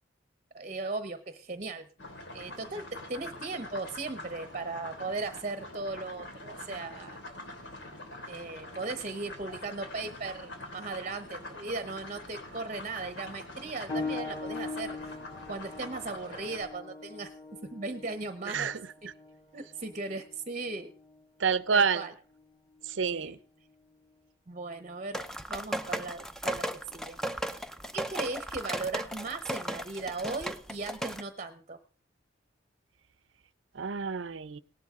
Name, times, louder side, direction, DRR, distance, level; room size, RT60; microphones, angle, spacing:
voice 1, 0.5-1.9 2.3-7.2 8.3-15.0 15.5-17.3 17.6-18.7 19.5-20.9 21.7-22.1 23.1-23.4 24.5-25.2 25.5-27.6 27.9-31.8, right 3 dB, 40° right, 0.9 m, -37 dB
sound 1, 2.0-16.7, left 2 dB, 70° left, 3.0 m, -45 dB
sound 2, 13.9-24.1 25.1-25.2 25.9-26.0, left 3 dB, 20° left, 3.2 m, -42 dB
voice 2, 18.5-18.8 21.4-22.0 22.9-23.3 33.7-34.6, right 5 dB, 85° right, 0.7 m, -28 dB
sound 3, 25.1-31.2, right 1 dB, 5° left, 0.6 m, -36 dB
17.5 x 11.5 x 3.7 m
head